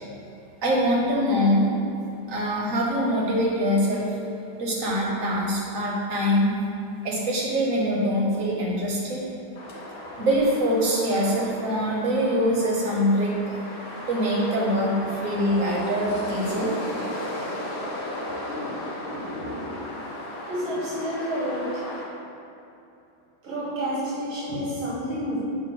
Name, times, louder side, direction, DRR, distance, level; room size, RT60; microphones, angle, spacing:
voice 1, 0.6-1.7 2.3-4.1 4.6-6.5 7.0-9.2 10.2-13.6 14.1-16.7, equal, 45° right, -3 dB, 1.4 m, -24 dB
sound 1, 9.6-22.1, left 1 dB, 80° left, 2.2 m, -35 dB
voice 2, 20.5-21.8 23.4-25.4, equal, 85° right, -8 dB, 2.3 m, -29 dB
8.3 x 2.9 x 6.1 m, 2.8 s
omnidirectional pair, 2.2 m